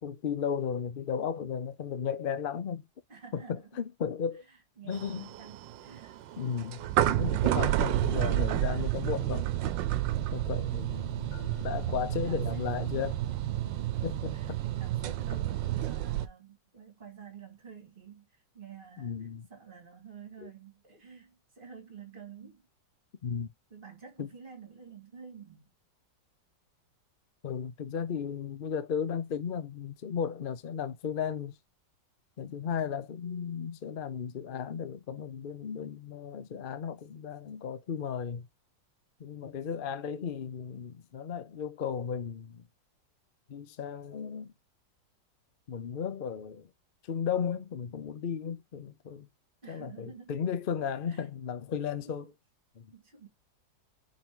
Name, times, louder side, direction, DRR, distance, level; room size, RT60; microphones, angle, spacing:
voice 1, 0.0-2.8 3.3-4.4 4.8-5.3 6.4-9.4 10.3-11.3 11.6-13.2 14.0-14.6 19.0-19.5 20.4-20.5 23.2-23.5 24.2-24.3 27.4-31.5 32.4-38.5 39.2-42.7 43.5-44.5 45.7-46.7 47.1-49.3 49.7-52.2 52.8-52.9, left 7 dB, 55° left, 0.5 m, -35 dB
voice 2, 3.1-3.8 4.4-6.2 12.0-12.7 13.3-22.7 23.7-25.7 49.6-50.4 51.1-51.3 52.0-52.3 52.9-53.3, right 7 dB, 30° right, 2.2 m, -50 dB
sound 1, 4.9-16.3, right 13 dB, 85° right, 1.4 m, -30 dB
sound 2, 11.3-12.8, left 15 dB, 85° left, 1.4 m, -47 dB
5.9 x 5.0 x 3.7 m
omnidirectional pair, 2.0 m